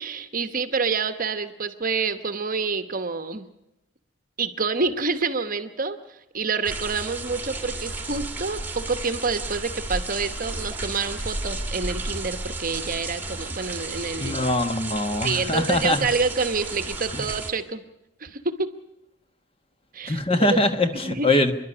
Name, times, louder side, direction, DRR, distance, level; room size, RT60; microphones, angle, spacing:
voice 1, 0.0-3.5 4.4-14.4 15.2-17.8 18.2-18.7 19.9-20.2 20.9-21.3, right 4 dB, 40° right, 10 dB, 1.0 m, -28 dB
sound 1, 6.6-17.5, right 2 dB, 10° right, 1.5 m, -33 dB
voice 2, 14.2-16.0 17.1-17.2 20.1-21.5, left 1 dB, 25° left, 7 dB, 1.3 m, -22 dB
27.5 x 11.5 x 9.8 m, 0.87 s
head